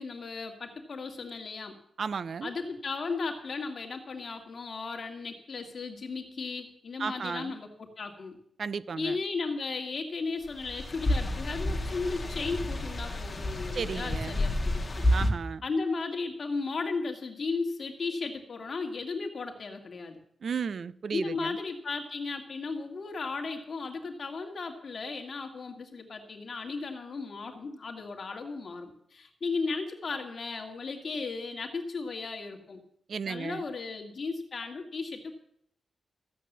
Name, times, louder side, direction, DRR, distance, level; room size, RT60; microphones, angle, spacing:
voice 1, 0.0-1.8 2.4-8.4 9.0-15.1 15.6-20.2 21.1-32.8 33.2-35.3, left 4 dB, 50° left, 2.0 m, -35 dB
voice 2, 2.0-2.5 7.0-7.5 8.6-9.2 13.7-14.4 15.1-15.6 20.4-21.5 33.1-33.6, right 6 dB, 60° right, 0.5 m, -34 dB
sound 1, 10.6-15.3, left 1 dB, 25° left, 1.7 m, -30 dB
14.5 x 8.4 x 7.3 m
wide cardioid pair, 125°, 0 cm